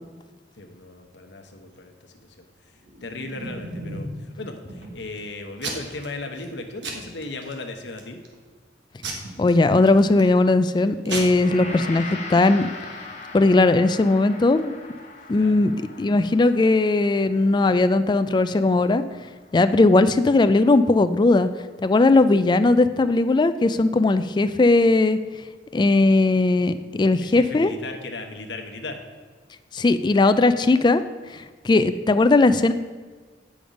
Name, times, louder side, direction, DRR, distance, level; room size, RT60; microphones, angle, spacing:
voice 1, 0.6-2.3 3.0-8.2 11.6-11.8 15.3-15.6 27.2-29.0, left 2 dB, 75° left, 5 dB, 0.9 m, -36 dB
Packing tape duct tape / Tearing, 2.8-4.2 4.7-5.2 5.6-6.1 6.4-6.5 6.8-7.5 8.0-8.3 9.0-10.3 10.8-10.9 11.1-11.2, right 2 dB, 85° right, 1.3 m, -34 dB
voice 2, 9.4-12.7 13.3-14.8 15.3-15.7 16.0-19.0 19.5-21.5 21.8-25.2 25.7-27.7 29.7-31.0 31.6-32.7, left 2 dB, 25° left, 12 dB, 0.3 m, -18 dB
Gong, 11.4-20.6, left 3 dB, 40° left, 1.0 m, -40 dB
8.6 x 5.1 x 5.1 m, 1.5 s
head